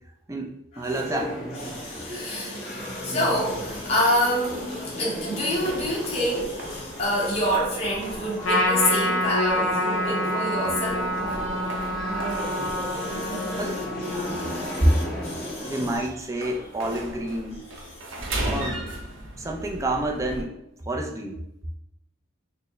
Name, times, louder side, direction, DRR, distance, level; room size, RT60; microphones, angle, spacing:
voice 1, 0.3-1.4 13.6-13.8 14.6-14.9 15.6-17.6 18.4-18.8 19.4-20.6 20.9-21.4, right 1 dB, 15° right, 1 dB, 0.3 m, -27 dB
sound 1, 0.9-16.0, equal, ahead, 0.9 m, -35 dB
voice 2, 1.6-11.1 12.3-15.9 17.9-18.0, equal, 30° left, -5 dB, 0.8 m, -28 dB
sound 2, 3.5-20.4, right 1 dB, 80° right, 0.7 m, -39 dB
Trumpet, 8.4-15.1, equal, 75° left, 0.7 m, -27 dB
4.1 x 2.0 x 3.2 m, 0.85 s
head